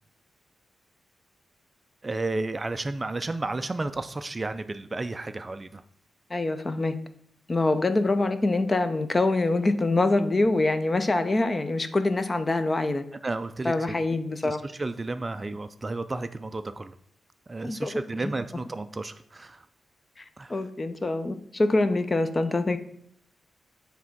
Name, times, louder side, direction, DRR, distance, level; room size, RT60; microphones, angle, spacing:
voice 1, 2.0-5.8 13.2-13.9 14.4-17.0 17.5-19.6 20.4-20.6, right 2 dB, 25° right, 10 dB, 0.3 m, -32 dB
voice 2, 6.3-7.0 7.5-13.0 13.6-14.6 17.6-17.9 20.5-22.8, left 2 dB, 25° left, 10 dB, 0.5 m, -25 dB
7.3 x 3.4 x 5.9 m, 0.66 s
wide cardioid pair, 125°, 0 cm